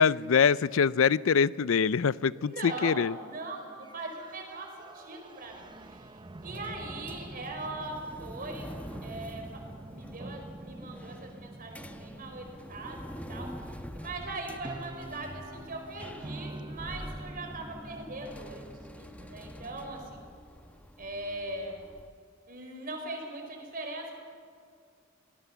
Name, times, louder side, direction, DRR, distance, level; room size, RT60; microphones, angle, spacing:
voice 1, 0.0-3.1, left 6 dB, 70° left, 19 dB, 0.5 m, -24 dB
voice 2, 2.3-6.1 6.4-8.7 9.0-9.6 9.9-20.3 21.0-21.8 22.5-24.1, right 2 dB, 45° right, 3 dB, 4.7 m, -40 dB
sound 1, 3.8-20.3, right 1 dB, 25° right, 0.6 m, -46 dB
sound 2, 5.4-22.1, equal, 5° left, 1.1 m, -47 dB
24.5 x 19.0 x 6.9 m, 2.3 s
head